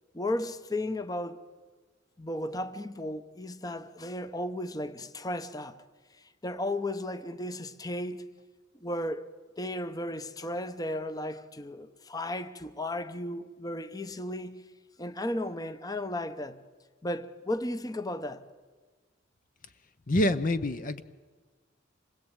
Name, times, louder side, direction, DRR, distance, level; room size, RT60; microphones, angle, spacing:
voice 1, 0.1-1.4 2.2-5.8 6.4-8.2 8.8-9.3 9.6-14.6 15.0-16.6 17.0-18.5, left 1 dB, 20° left, 0.9 m, -34 dB
voice 2, 20.1-21.0, left 1 dB, 45° left, 0.8 m, -26 dB
27.0 x 20.5 x 8.9 m
head